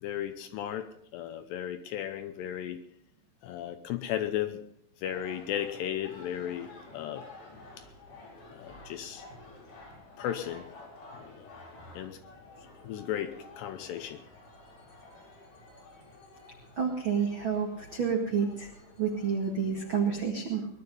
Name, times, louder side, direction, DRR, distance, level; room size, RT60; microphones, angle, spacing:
voice 1, 0.0-2.8 3.4-4.6 5.0-7.3 7.8-7.9 8.5-9.3 10.2-10.7 11.2-11.5 11.9-12.2 12.6-14.2, left 11 dB, 80° left, 9 dB, 2.6 m, -35 dB
sound 1, 5.0-20.3, left 2 dB, 60° left, 6.6 m, -51 dB
voice 2, 16.8-18.7 19.0-20.7, right 6 dB, 60° right, 1 dB, 1.2 m, -29 dB
20.5 x 11.5 x 5.4 m, 0.73 s
omnidirectional pair, 5.5 m